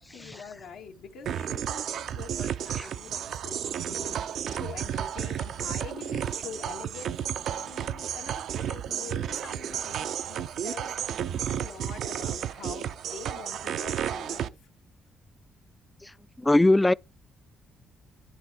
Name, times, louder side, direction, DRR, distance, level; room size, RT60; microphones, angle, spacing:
voice 1, 0.1-11.1 11.5-14.5, left 6 dB, 85° left, 1.5 m, -45 dB
sound 1, 1.3-14.5, right 9 dB, 70° right, 0.5 m, -32 dB
voice 2, 16.4-16.9, left 2 dB, 10° left, 0.3 m, -18 dB
10.0 x 3.5 x 4.6 m
cardioid pair, 90°, 0 cm